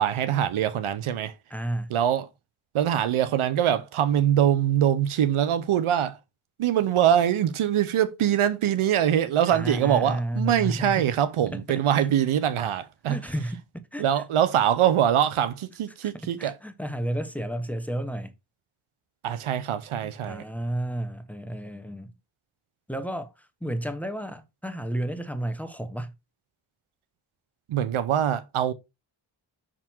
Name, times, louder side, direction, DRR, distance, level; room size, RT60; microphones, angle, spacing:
voice 1, 0.0-1.3 1.9-2.3 2.7-6.2 6.6-13.2 14.0-16.6 19.2-20.4 27.7-28.7, right 10 dB, 85° right, 0.7 m, -23 dB
voice 2, 1.5-1.9 9.5-11.0 11.5-12.1 13.1-14.0 16.0-16.1 16.4-18.3 20.0-22.1 22.9-26.1, right 1 dB, 5° left, 1.0 m, -32 dB
5.8 x 3.8 x 4.4 m
cardioid pair, 55°, 48 cm